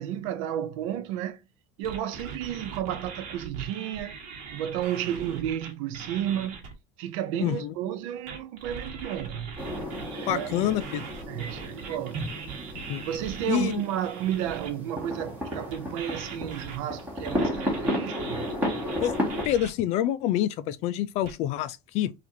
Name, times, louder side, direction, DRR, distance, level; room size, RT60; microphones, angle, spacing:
voice 1, 0.0-1.4 1.8-4.1 4.5-6.6 7.0-9.5 10.1-10.7 11.3-12.2 13.1-18.5, right 11 dB, 80° right, 0.6 m, -32 dB
sound 1, 1.8-6.7 8.3-14.7 15.7-19.7 21.2-21.3, right 5 dB, 50° right, 1.3 m, -41 dB
voice 2, 7.4-7.7 10.3-11.0 12.9-13.1 13.5-13.8 19.0-19.2 19.4-22.1, left 12 dB, 40° left, 0.4 m, -27 dB
sound 2, 9.6-19.4, equal, 10° right, 1.1 m, -33 dB
5.7 x 2.5 x 2.7 m
cardioid pair, 175°, 17 cm